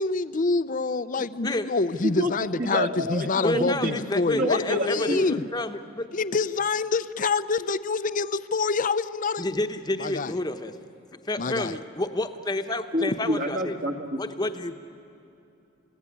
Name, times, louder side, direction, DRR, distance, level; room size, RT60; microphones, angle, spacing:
voice 1, 0.0-5.5 6.1-9.4 10.0-10.3 11.4-11.7, left 4 dB, 40° left, 14 dB, 0.6 m, -26 dB
voice 2, 1.2-1.7 3.4-6.1 9.4-10.8 11.2-13.8 14.2-14.7, left 1 dB, 20° left, 7 dB, 1.0 m, -29 dB
voice 3, 2.0-4.0 4.3-5.2 12.9-14.2, equal, 45° right, 5 dB, 1.9 m, -28 dB
29.5 x 17.0 x 10.0 m, 2.7 s
head